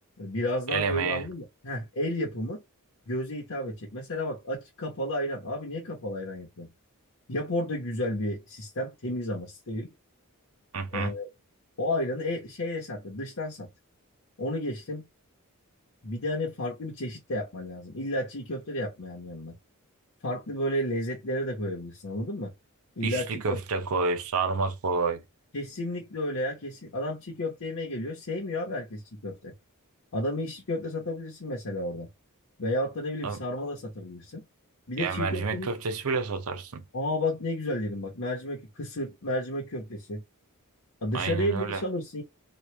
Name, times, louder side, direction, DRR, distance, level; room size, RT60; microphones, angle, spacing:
voice 1, 0.2-2.6 3.1-6.7 7.3-9.9 10.9-11.3 11.8-13.7 14.4-15.1 16.0-19.5 20.2-22.5 23.0-23.6 25.5-29.5 30.1-32.1 32.6-34.4 34.9-35.7 36.9-40.2 41.0-42.2, left 1 dB, 65° left, 1.1 m, -32 dB
voice 2, 0.7-1.2 10.7-11.1 23.0-25.2 33.2-33.4 35.0-36.8 41.1-41.8, right 4 dB, 70° right, 0.6 m, -29 dB
3.1 x 2.5 x 3.2 m
head